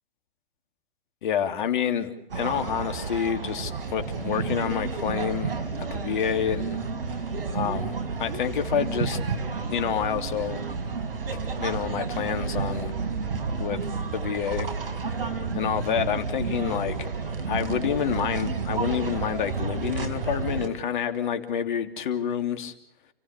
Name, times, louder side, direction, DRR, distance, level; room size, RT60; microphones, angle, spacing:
voice 1, 1.2-5.6 5.9-6.8 7.5-9.2 9.7-10.7 11.6-12.9 13.6-13.8 14.1-14.7 15.5-17.1 17.5-22.7, left 8 dB, 55° left, 7 dB, 3.1 m, -28 dB
sound 1, 2.3-20.7, right 4 dB, 70° right, 4.4 m, -31 dB
30.0 x 16.5 x 8.3 m, 0.86 s
hypercardioid pair, 130°, 29 cm